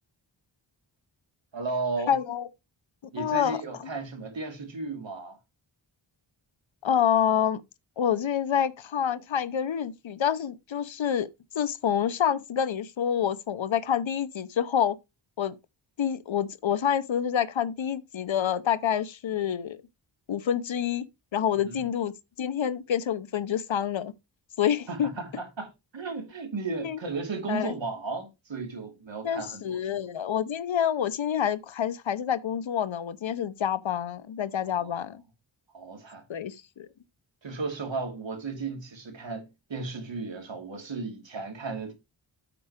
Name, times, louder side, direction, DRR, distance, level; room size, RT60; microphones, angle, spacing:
voice 1, 1.5-2.2 3.1-5.4 21.7-21.9 24.9-30.0 34.7-35.0 35.7-36.2 37.4-41.9, right 3 dB, 70° right, 2.7 m, -35 dB
voice 2, 2.1-2.5 3.2-3.6 6.8-7.6 8.0-11.3 11.5-15.0 15.4-15.6 16.0-19.8 20.3-22.1 22.4-24.1 24.6-25.1 26.8-27.0 27.5-27.8 29.2-35.2 36.3-36.9, left 9 dB, 75° left, 0.8 m, -27 dB
8.6 x 4.8 x 5.0 m
wide cardioid pair, 110°, 47 cm